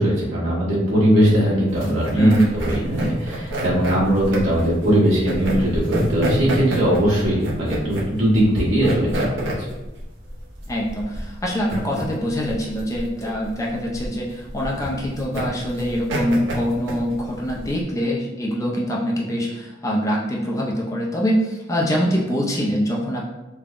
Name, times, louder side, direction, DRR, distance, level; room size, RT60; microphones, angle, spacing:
voice 1, 0.0-9.5, equal, 80° right, -8 dB, 1.2 m, -20 dB
sound 1, 1.7-17.8, right 1 dB, 60° right, 0.6 m, -28 dB
voice 2, 2.2-2.5 10.7-23.2, equal, 15° left, -3 dB, 0.3 m, -24 dB
3.4 x 2.0 x 2.4 m, 1.1 s
head